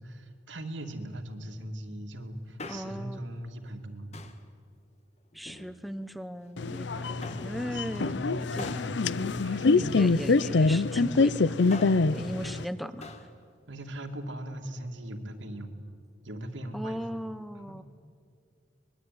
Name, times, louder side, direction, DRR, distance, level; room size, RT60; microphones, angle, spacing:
voice 1, 0.0-4.1 7.1-7.4 7.7-10.0 12.2-13.1 13.7-15.8 16.2-17.2 17.7-17.8, right 1 dB, 85° right, 3 dB, 2.5 m, -40 dB
Male speech man speaking, 2.4-3.2 4.1-4.5 5.3-6.1 7.2-7.6 8.6-10.2 11.5-12.1 13.0-13.3 13.6-13.7, left 2 dB, 35° left, 1.6 m, -45 dB
voice 2, 2.7-3.2 5.3-8.2 8.5-11.6 12.1-13.1 16.7-17.8, equal, ahead, 12 dB, 0.8 m, -38 dB
sound 1, 6.6-12.6, left 3 dB, 70° left, 0.6 m, -25 dB
24.5 x 21.5 x 9.4 m, 2.2 s
head